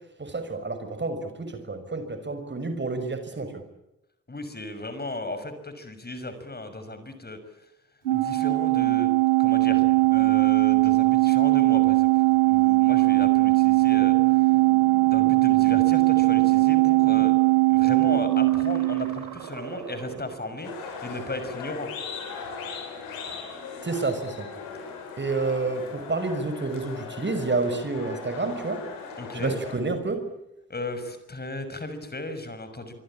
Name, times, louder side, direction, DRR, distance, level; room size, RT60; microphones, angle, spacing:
voice 1, 0.2-3.5 23.8-24.5 25.2-28.8 29.3-30.2, right 3 dB, 30° right, 9 dB, 5.9 m, -29 dB
voice 2, 4.3-7.4 8.1-9.9 10.1-14.5 15.0-17.3 17.7-21.9 29.2-29.6 30.7-33.0, left 2 dB, 25° left, 10 dB, 6.4 m, -36 dB
Organ, 8.1-19.3, right 23 dB, 90° right, 2.1 m, -20 dB
sound 1, 9.5-23.4 23.7-25.1, right 5 dB, 70° right, 7.1 m, -45 dB
sound 2, 20.6-29.8, left 5 dB, 75° left, 6.8 m, -38 dB
25.5 x 24.0 x 8.9 m, 0.90 s
hypercardioid pair, 40°, 35 cm